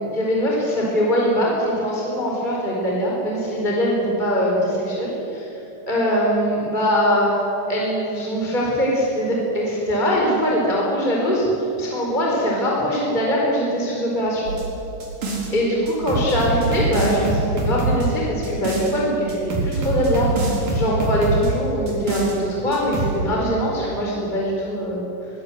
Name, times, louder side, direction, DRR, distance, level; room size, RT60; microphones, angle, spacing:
voice 1, 0.0-5.5 5.9-7.3 7.7-11.5 11.8-14.4 15.2-25.1, equal, 15° left, -3 dB, 4.6 m, -22 dB
sound 1, 14.5-15.5 15.9-18.9 19.3-21.5 21.9-22.4 22.7-23.1, right 2 dB, 80° right, 5.7 m, -24 dB
23.5 x 20.0 x 8.0 m, 3.0 s
omnidirectional pair, 3.7 m